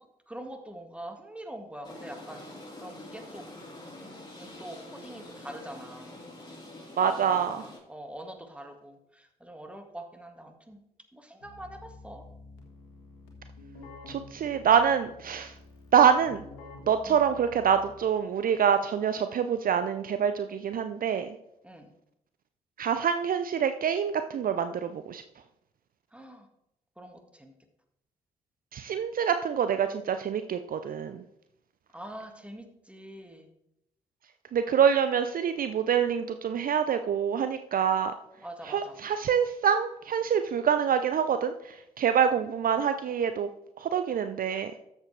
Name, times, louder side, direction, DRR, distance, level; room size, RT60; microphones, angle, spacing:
voice 1, 0.3-2.4 2.8-3.4 4.4-6.2 7.2-10.8 11.1-12.2 17.0-17.3 21.6-21.9 26.1-26.5 27.0-27.5 31.9-33.5 38.4-39.0, right 1 dB, 5° right, 5 dB, 1.9 m, -44 dB
sound 1, 1.8-7.8, left 1 dB, 25° left, 3.9 m, -46 dB
voice 2, 7.0-7.6 14.1-15.5 15.9-16.4 16.9-21.3 22.8-25.2 28.7-31.2 34.5-38.1 38.7-43.5 43.8-44.7, right 8 dB, 45° right, 10 dB, 0.6 m, -26 dB
Keyboard (musical), 11.4-18.3, left 2 dB, 75° left, 1.6 m, -49 dB
13.5 x 7.2 x 3.4 m, 0.81 s
figure-of-eight pair, 40°, 19 cm